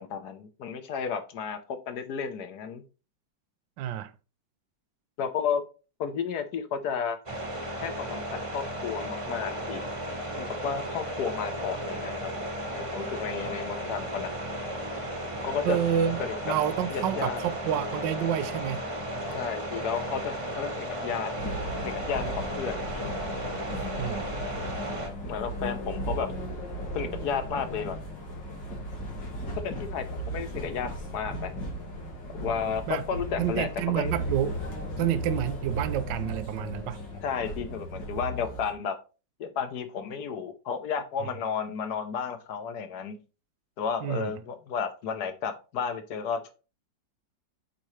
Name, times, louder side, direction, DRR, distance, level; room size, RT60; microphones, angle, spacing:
voice 1, 0.0-2.8 5.2-5.6 6.0-7.2 7.8-9.8 10.4-14.3 15.4-15.8 16.2-16.3 16.9-17.4 19.3-21.3 21.8-23.0 25.3-26.3 26.9-28.0 29.6-31.5 32.4-34.1 37.2-39.0 39.4-43.2 43.8-46.5, left 6 dB, 65° left, 1.5 m, -32 dB
voice 2, 3.8-4.1 15.6-18.9 24.0-24.3 32.9-33.0 33.4-34.6 35.0-37.0 44.0-44.3, right 10 dB, 80° right, 1.3 m, -29 dB
sound 1, 7.3-25.1, equal, 20° right, 1.0 m, -34 dB
sound 2, 21.4-38.7, equal, 90° left, 3.0 m, -36 dB
8.8 x 4.2 x 3.2 m
omnidirectional pair, 1.9 m